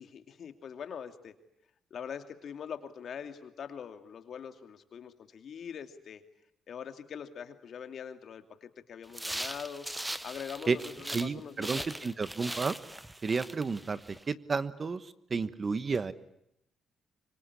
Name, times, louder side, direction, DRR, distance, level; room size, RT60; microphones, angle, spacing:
voice 1, 0.0-1.3 1.9-6.2 6.7-9.9 10.2-12.1, left 7 dB, 60° left, 7 dB, 2.6 m, -43 dB
sound 1, 9.1-11.3 11.6-14.2, right 1 dB, 10° right, 1.1 m, -40 dB
voice 2, 11.1-12.8 13.2-14.0 14.3-16.1, right 4 dB, 35° right, 14 dB, 1.2 m, -31 dB
24.5 x 24.5 x 9.9 m, 0.79 s
cardioid pair, 90°, 0 cm